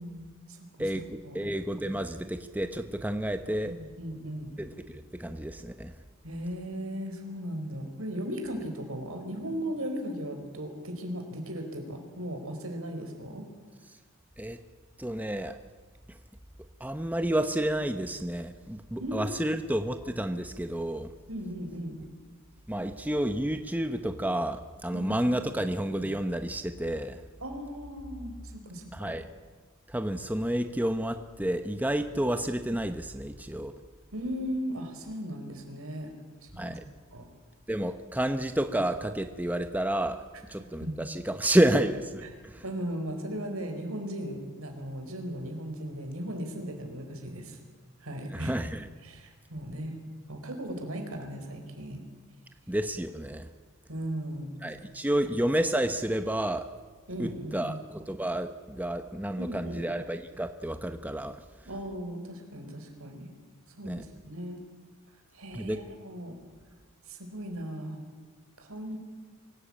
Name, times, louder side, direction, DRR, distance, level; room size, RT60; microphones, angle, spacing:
voice 1, 0.0-0.7 1.2-1.4 3.6-4.5 6.2-13.4 19.0-19.6 21.3-22.0 24.9-25.1 25.5-25.7 27.4-29.2 34.1-36.1 36.5-36.8 37.1-37.3 40.8-40.9 42.6-47.6 48.0-48.5 49.0-50.0 50.3-52.0 53.9-54.6 55.1-55.2 57.1-57.8 59.4-59.9 61.6-63.3 63.8-64.6 65.3-66.3 67.1-68.0 68.6-69.0, equal, 75° right, 5 dB, 4.5 m, -37 dB
voice 2, 0.8-3.7 4.6-5.9 14.4-14.6 15.0-15.6 16.1-16.2 16.8-21.1 22.7-27.2 28.9-29.3 29.9-33.7 36.6-36.8 37.7-42.6 48.3-48.9 52.7-53.5 54.6-56.7 57.2-61.4 63.8-64.0 65.5-65.8, right 1 dB, 10° right, 8 dB, 0.8 m, -30 dB
24.5 x 17.0 x 8.7 m, 1.4 s
head